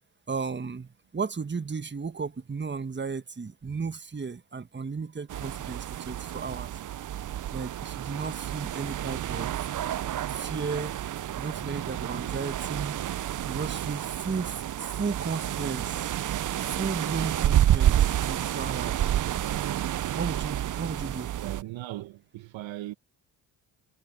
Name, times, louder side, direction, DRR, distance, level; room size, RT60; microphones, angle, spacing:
voice 1, 0.3-6.7 7.5-9.5 10.3-11.0 11.4-13.0 13.4-16.1 16.7-19.0 20.1-21.3, right 5 dB, 20° right, 1.4 m, -34 dB
sound 1, 5.3-21.6, right 12 dB, 40° right, 0.6 m, -29 dB
voice 2, 21.3-22.9, right 15 dB, 70° right, 1.2 m, -38 dB
hypercardioid pair, 45°, 48 cm